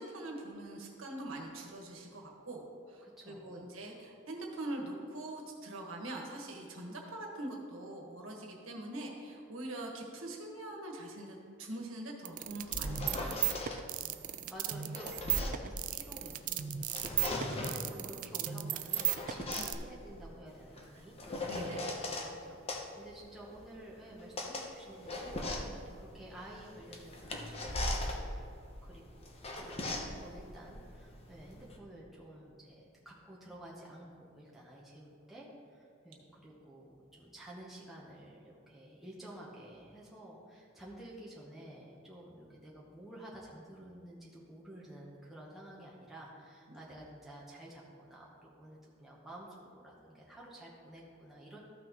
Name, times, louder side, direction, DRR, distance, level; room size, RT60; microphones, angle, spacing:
voice 1, 0.0-2.6 2.9-13.6 17.2-17.7 21.0-21.1 21.4-21.9 46.7-46.8, right 1 dB, 75° right, 0 dB, 1.5 m, -43 dB
voice 2, 3.0-3.6 14.0-21.8 22.2-22.6 23.0-28.2 28.5-51.6, right 1 dB, ahead, -6 dB, 1.0 m, -51 dB
sound 1, 12.2-19.7, right 13 dB, 40° right, 0.4 m, -35 dB
sound 2, 12.4-13.8 14.6-16.4 16.8-17.9 18.7-22.3 22.7-31.8, left 1 dB, 30° left, 0.8 m, -39 dB
13.5 x 5.9 x 3.0 m, 2.4 s
head